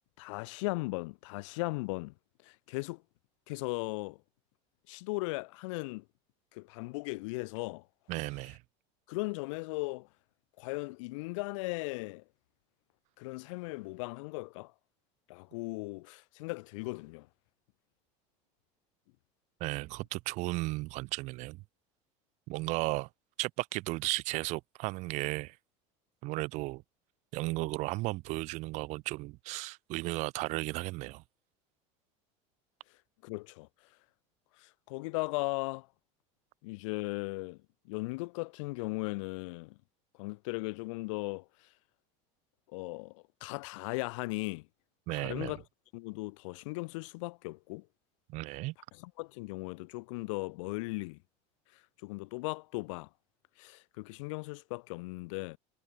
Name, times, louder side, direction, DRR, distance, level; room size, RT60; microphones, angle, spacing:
voice 1, 0.2-2.1 2.4-3.0 3.5-4.2 4.9-6.0 6.5-7.9 9.1-10.1 10.6-12.2 13.2-14.7 15.3-17.3 33.2-33.7 34.6-35.9 36.6-37.6 37.9-39.8 40.2-41.7 42.7-44.7 45.1-45.6 45.9-47.9 49.0-51.2 51.7-53.1 53.6-55.6, left 25 dB, 85° left, 0.4 m, -37 dB
voice 2, 8.1-8.6 19.6-21.6 22.5-23.1 23.4-25.6 26.2-26.8 27.3-31.2 45.1-45.6 48.3-48.7, right 22 dB, 50° right, 1.4 m, -35 dB
cardioid pair, 165°, 16 cm